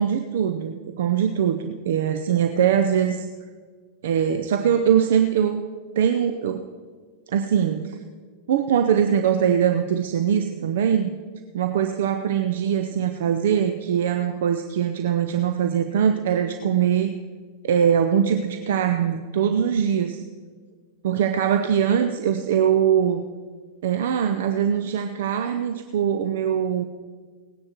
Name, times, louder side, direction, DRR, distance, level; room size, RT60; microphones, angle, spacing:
voice 1, 0.0-3.3 4.0-5.6 6.0-6.7 7.3-8.0 8.5-11.1 11.5-17.2 17.6-20.2 21.0-23.2 23.8-26.8, right 8 dB, 60° right, 8 dB, 0.6 m, -22 dB
18.0 x 9.8 x 4.4 m, 1.5 s
figure-of-eight pair, 90°, 0 cm